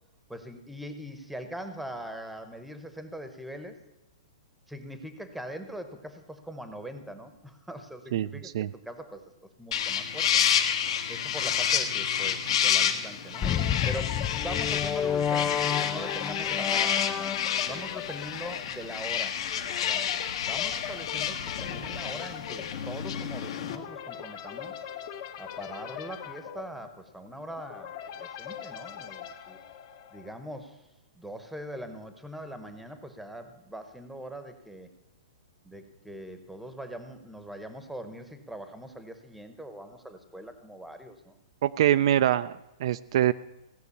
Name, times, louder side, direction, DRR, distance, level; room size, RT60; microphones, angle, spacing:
voice 1, 0.3-3.8 4.7-10.5 11.1-13.5 13.8-17.0 17.7-19.4 19.9-24.8 25.4-29.6 30.1-30.9 31.1-34.9 35.6-41.4, equal, ahead, 8 dB, 0.9 m, -42 dB
sound 1, 9.7-23.7, left 9 dB, 60° left, 1.4 m, -29 dB
sound 2, 13.3-30.5, left 9 dB, 35° left, 1.0 m, -41 dB
sound 3, 13.4-17.8, left 8 dB, 15° left, 0.4 m, -30 dB
voice 2, 41.6-43.3, right 11 dB, 55° right, 13 dB, 0.4 m, -24 dB
16.5 x 6.3 x 8.4 m, 0.97 s
hypercardioid pair, 160°, 3 cm